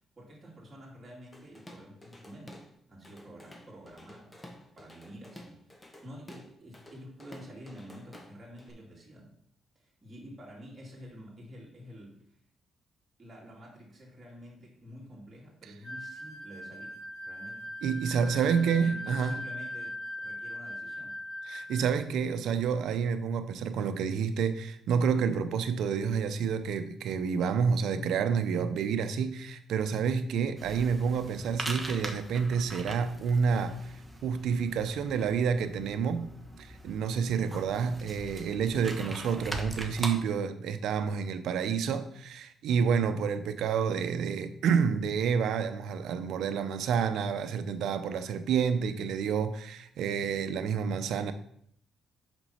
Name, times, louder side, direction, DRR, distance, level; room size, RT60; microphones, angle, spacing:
voice 1, 0.2-2.6 2.9-4.5 4.7-5.7 6.0-9.3 9.7-12.2 13.2-17.7 18.3-21.2, equal, 25° right, 2.6 m, -49 dB
Drum kit / Drum, 1.3-2.7 3.0-8.7, left 1 dB, 20° left, 1.3 m, -51 dB
sound 1, 15.8-21.9, left 1 dB, 65° left, 2.0 m, -40 dB
voice 2, 17.8-19.4 21.4-33.8 34.2-36.3 36.6-51.3, right 6 dB, 80° right, 0.7 m, -29 dB
sound 2, 30.6-40.1, right 1 dB, 10° right, 1.2 m, -42 dB
6.0 x 5.3 x 5.6 m
cardioid pair, 90°, 0 cm